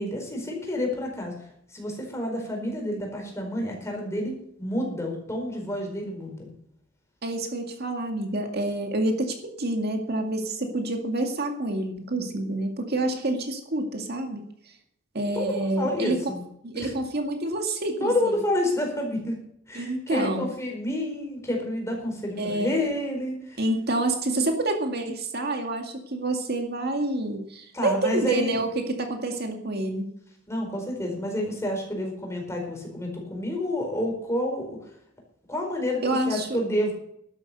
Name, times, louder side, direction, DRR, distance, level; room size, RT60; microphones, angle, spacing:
voice 1, 0.0-6.5 15.3-16.4 16.7-16.9 18.0-19.4 19.7-23.6 27.7-28.6 30.5-34.8 35.5-36.9, left 1 dB, 15° left, 1 dB, 4.6 m, -29 dB
voice 2, 7.2-14.4 15.1-16.2 16.6-18.3 19.7-20.5 22.4-22.9 23.6-30.1 36.0-36.5, right 2 dB, 55° right, 4 dB, 2.1 m, -28 dB
12.0 x 10.5 x 6.7 m, 0.72 s
head